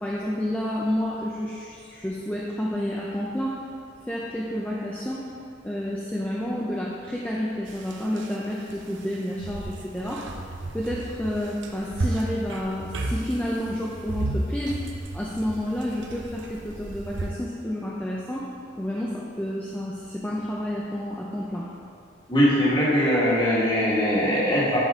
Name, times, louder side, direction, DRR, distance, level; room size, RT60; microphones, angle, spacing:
voice 1, 0.0-3.6 4.1-5.3 5.6-10.3 10.7-14.8 15.1-18.5 18.8-21.7, equal, 10° left, -5 dB, 0.5 m, -30 dB
sound 1, 7.7-8.3 8.7-17.3, right 2 dB, 80° right, 0.7 m, -33 dB
voice 2, 22.3-24.8, equal, 25° left, -7 dB, 1.6 m, -21 dB
10.5 x 4.2 x 3.6 m, 2.4 s
head